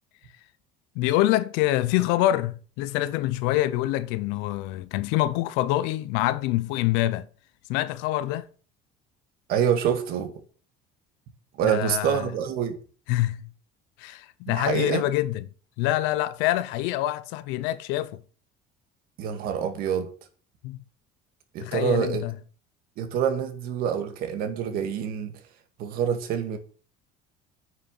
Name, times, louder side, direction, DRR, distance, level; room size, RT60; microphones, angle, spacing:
voice 1, 0.9-7.3 7.7-8.5 11.6-12.3 13.1-13.5 14.0-15.5 15.8-18.2 20.6-20.8 21.6-22.3, left 15 dB, 80° left, 0.9 m, -25 dB
voice 2, 9.5-10.3 11.6-12.8 14.5-15.0 19.2-20.1 21.5-22.2 23.0-25.3 25.8-26.6, right 8 dB, 55° right, 2.1 m, -26 dB
9.3 x 6.5 x 7.8 m
cardioid pair, 175°, 19 cm